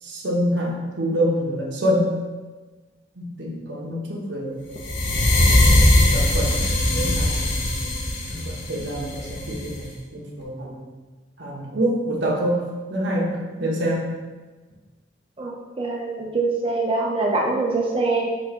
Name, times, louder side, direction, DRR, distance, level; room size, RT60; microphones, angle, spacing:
voice 1, 0.0-2.1 3.2-4.8 6.1-7.4 8.3-10.9 11.4-12.6 12.9-14.1, equal, 80° right, -2 dB, 0.9 m, -26 dB
sound 1, 4.8-9.8, left 1 dB, 80° left, 0.7 m, -20 dB
voice 2, 15.8-18.3, right 3 dB, 30° right, -2 dB, 0.5 m, -23 dB
4.5 x 2.6 x 4.2 m, 1.3 s
head